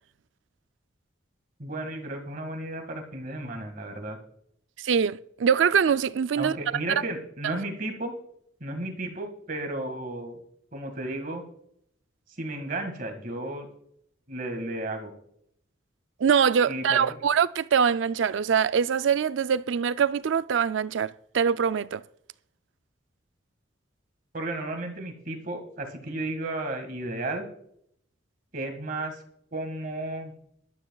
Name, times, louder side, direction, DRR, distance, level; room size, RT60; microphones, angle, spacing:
voice 1, 1.6-4.2 6.4-8.1 8.6-10.4 10.7-11.4 12.4-13.7 14.3-15.1 16.6-17.1 24.3-27.5 28.5-29.2 29.5-30.3, right 2 dB, 45° right, 1.9 m, -33 dB
voice 2, 4.8-6.6 16.2-22.0, right 7 dB, 75° right, 0.4 m, -23 dB
21.0 x 12.5 x 2.3 m
head